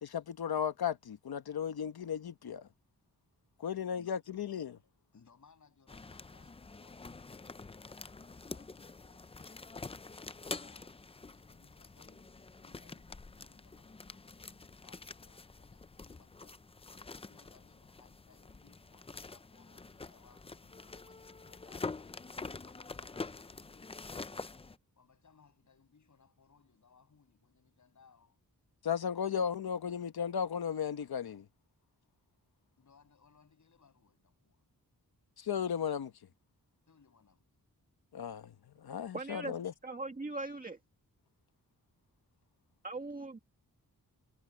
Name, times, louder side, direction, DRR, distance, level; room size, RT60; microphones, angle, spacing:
voice 1, 0.0-2.7 3.6-4.8 28.8-31.4 35.4-36.1 38.1-38.5 38.8-39.7, left 8 dB, 90° left, 1.3 m, -35 dB
voice 2, 5.1-7.5 8.3-9.3 10.5-16.6 16.9-22.2 22.5-24.5 25.0-28.4 32.8-34.6 36.9-37.5, left 5 dB, 55° left, 7.5 m, -66 dB
sound 1, 5.9-24.8, left 3 dB, 15° left, 0.4 m, -46 dB
voice 3, 39.1-39.5 39.8-40.8 42.8-43.4, right 2 dB, 25° right, 1.9 m, -40 dB
wide cardioid pair, 175°, 36 cm